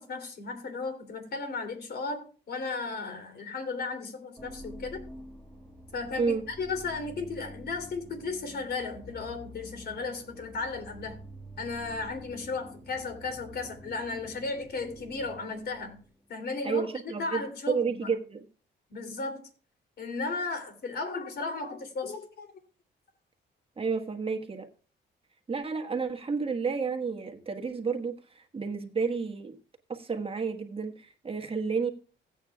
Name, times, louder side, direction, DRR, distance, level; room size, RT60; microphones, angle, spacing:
voice 1, 0.0-5.1 5.9-11.2 11.6-16.0 16.3-18.1 18.9-19.4 20.0-22.5, left 4 dB, 55° left, 6 dB, 3.1 m, -35 dB
sound 1, 4.4-16.2, equal, 10° left, 1.8 m, -48 dB
voice 2, 16.6-18.4 23.8-24.7 25.5-29.5 29.9-31.9, right 5 dB, 30° right, 4 dB, 1.4 m, -31 dB
16.5 x 9.0 x 2.4 m, 0.38 s
cardioid pair, 90°, 20 cm